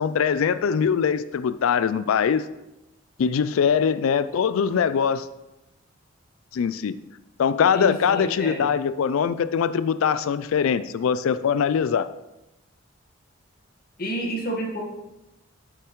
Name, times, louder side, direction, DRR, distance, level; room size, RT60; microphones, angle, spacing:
voice 1, 0.0-2.5 3.2-5.3 6.5-7.0 7.4-12.1, left 7 dB, 80° left, 14 dB, 0.4 m, -22 dB
voice 2, 7.7-8.7 14.0-14.8, right 1 dB, 45° left, 0 dB, 1.5 m, -29 dB
8.2 x 8.1 x 3.1 m, 0.97 s
head